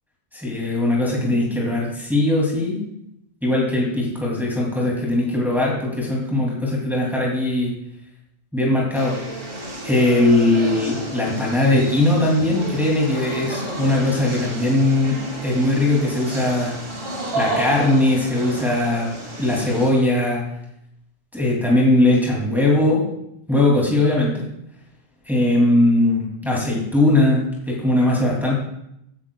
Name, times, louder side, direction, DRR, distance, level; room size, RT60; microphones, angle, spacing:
voice 1, 0.3-2.8 3.4-7.7 8.5-9.2 9.8-16.7 17.3-19.1 19.4-20.4 21.3-23.0 23.5-24.4 25.3-28.6, left 1 dB, ahead, -4 dB, 2.5 m, -20 dB
sound 1, 8.9-19.9, right 2 dB, 60° right, 2.1 m, -31 dB
15.5 x 9.5 x 2.3 m, 0.79 s
omnidirectional pair, 1.1 m